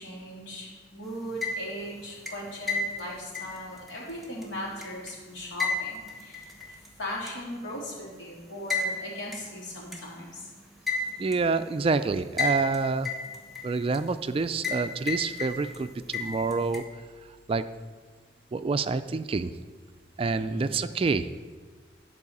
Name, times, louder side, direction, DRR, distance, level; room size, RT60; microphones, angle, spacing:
voice 1, 0.0-10.5 20.4-20.7, equal, 85° left, -5 dB, 3.5 m, -38 dB
sound 1, 1.2-1.9 2.3-5.1 5.6-6.9 7.3-7.4 8.7-8.9 9.3-9.4 9.9-10.0 10.9-11.4 12.4-12.8 13.0-14.0 14.6-14.8 15.1-15.8 16.1-16.8, left 3 dB, ahead, 1.1 m, -31 dB
voice 2, 11.2-13.1 13.6-16.8 17.5-17.6 18.5-19.5 20.2-21.3, right 4 dB, 30° right, 11 dB, 0.3 m, -27 dB
11.0 x 4.7 x 7.2 m, 1.5 s
head